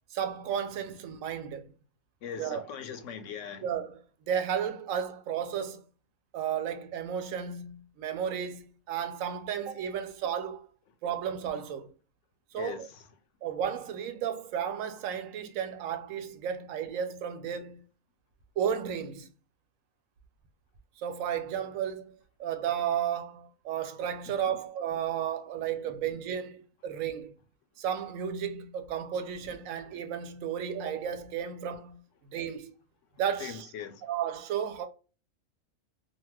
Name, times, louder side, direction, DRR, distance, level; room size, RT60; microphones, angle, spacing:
voice 1, 0.1-1.7 2.4-2.6 3.6-5.8 6.3-10.7 11.0-11.9 12.5-12.9 13.4-17.8 18.6-19.3 21.0-22.0 22.4-27.3 27.8-32.0 32.3-32.7 33.2-33.7 34.0-34.9, right 8 dB, 80° right, 1.0 m, -33 dB
voice 2, 2.2-3.7 12.5-13.0 33.4-34.1, left 8 dB, 75° left, 0.9 m, -40 dB
2.7 x 2.2 x 3.0 m
omnidirectional pair, 1.4 m